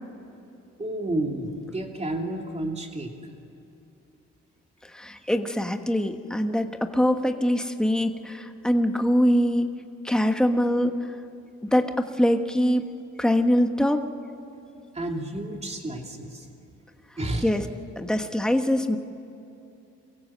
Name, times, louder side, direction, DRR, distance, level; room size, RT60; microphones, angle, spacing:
voice 1, 0.8-3.1 14.9-16.5 17.2-17.5, right 1 dB, 20° right, 2 dB, 2.9 m, -31 dB
voice 2, 4.8-9.7 10.0-11.1 11.6-12.8 13.2-14.0 17.4-17.6 18.0-19.0, equal, ahead, 7 dB, 1.3 m, -23 dB
23.5 x 16.0 x 7.6 m, 2.8 s
cardioid pair, 90°, 30 cm